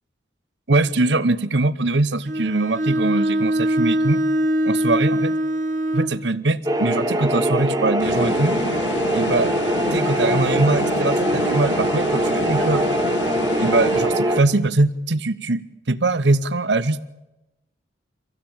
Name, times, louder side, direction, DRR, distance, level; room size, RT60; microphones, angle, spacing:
voice 1, 0.7-4.2 4.6-5.3 5.9-8.6 9.1-9.5 9.9-12.8 13.6-15.6 15.9-17.0, right 2 dB, 70° right, 15 dB, 1.0 m, -22 dB
Bowed string instrument, 2.3-6.2, right 1 dB, 40° right, 1.3 m, -22 dB
sound 1, 6.7-14.4, right 1 dB, 20° right, 1.5 m, -22 dB
sound 2, 8.0-14.6, left 4 dB, 70° left, 0.7 m, -30 dB
25.5 x 16.0 x 8.8 m, 0.97 s
head